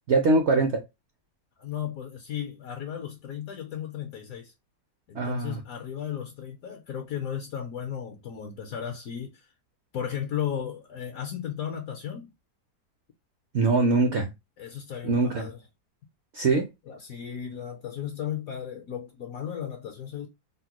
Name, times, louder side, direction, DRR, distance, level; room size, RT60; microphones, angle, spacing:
voice 1, 0.1-0.8 5.1-5.6 13.5-14.3 15.0-15.5 16.3-16.7, right 3 dB, 65° right, 0.7 m, -22 dB
voice 2, 1.6-4.5 5.1-9.5 9.9-12.3 14.6-15.6 16.9-20.3, left 9 dB, 70° left, 0.9 m, -35 dB
3.6 x 2.1 x 2.8 m
omnidirectional pair, 1.7 m